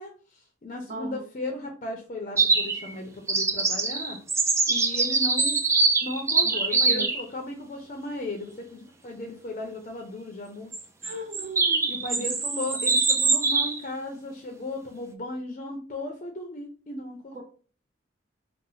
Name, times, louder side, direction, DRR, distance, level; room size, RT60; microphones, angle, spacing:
voice 1, 0.0-4.2 4.7-5.6 6.0-10.7 11.9-17.4, left 2 dB, 40° left, 2 dB, 0.5 m, -36 dB
voice 2, 0.9-1.2 6.4-7.1 11.0-12.3 12.7-12.9 17.3-17.4, right 3 dB, 40° right, 3 dB, 0.7 m, -37 dB
sound 1, 2.4-2.9 3.3-7.2 10.7-13.8, right 4 dB, 15° right, 0.3 m, -24 dB
2.8 x 2.0 x 4.0 m, 0.40 s
head